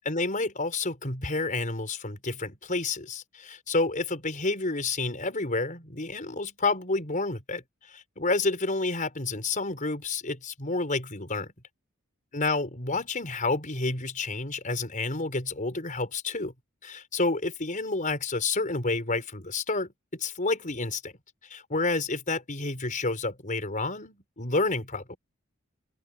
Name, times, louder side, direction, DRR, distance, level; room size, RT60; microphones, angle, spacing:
voice 1, 0.1-11.5 12.3-16.5 16.8-21.1 21.5-25.2, left 3 dB, 40° left, 5.2 m, -29 dB
head